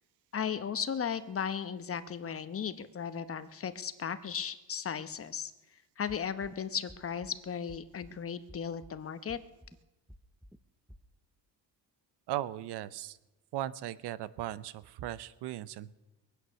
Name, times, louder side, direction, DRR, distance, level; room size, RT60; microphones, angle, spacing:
voice 1, 0.3-5.5 6.0-9.4, left 7 dB, 35° left, 11 dB, 0.9 m, -36 dB
sound 1, 6.1-6.6 6.9-7.4 7.7-8.2 8.5-9.0 9.3-9.8 10.1-10.6 10.9-11.0, equal, ahead, 0.5 m, -52 dB
voice 2, 12.3-13.2 13.5-15.9, right 13 dB, 80° right, 17 dB, 0.8 m, -37 dB
22.5 x 9.6 x 6.4 m, 1.0 s
cardioid pair, 125°, 40 cm